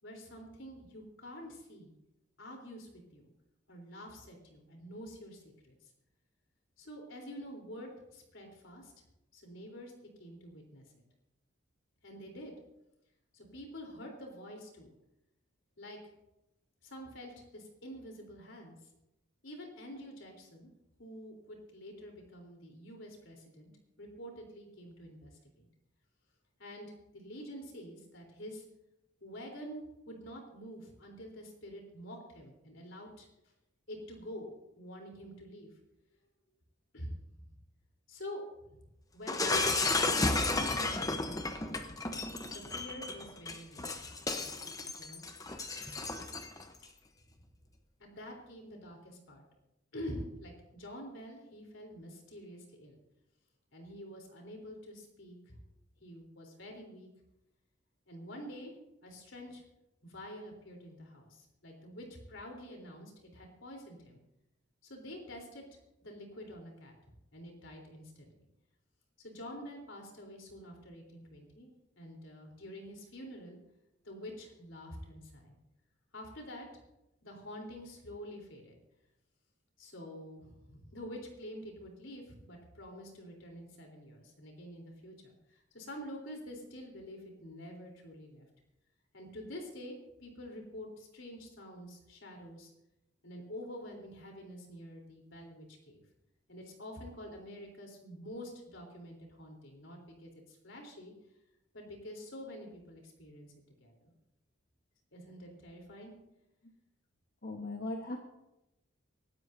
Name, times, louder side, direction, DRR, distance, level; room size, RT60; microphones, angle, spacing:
voice 1, 0.0-1.9 2.4-3.3 3.7-5.7 6.8-8.9 9.3-11.0 12.0-12.5 13.3-14.9 15.8-16.0 16.8-18.8 19.4-20.7 21.0-23.7 24.0-25.7 26.6-26.9 27.1-28.6 29.2-33.3 33.9-35.7 36.9-37.4 38.1-38.4 38.7-38.8 39.1-39.7 40.3-41.6 42.5-44.0 45.0-45.2 46.0-46.3 48.0-49.4 49.9-53.0 53.7-55.6 56.0-57.1 58.1-58.7 59.0-59.6 60.0-64.2 64.8-65.6 66.0-66.9 67.3-68.5 69.2-71.7 72.0-73.6 74.0-75.6 76.1-76.7 77.2-78.8 79.8-88.5 89.1-92.7 93.2-96.0 96.5-101.1 101.7-103.5 103.8-104.1 105.1-106.1, equal, 75° left, 1 dB, 3.7 m, -47 dB
Shatter, 39.3-46.6, left 3 dB, 20° left, 0.9 m, -33 dB
voice 2, 107.4-108.2, left 2 dB, 50° left, 2 dB, 1.2 m, -38 dB
24.5 x 12.5 x 2.7 m, 0.91 s
head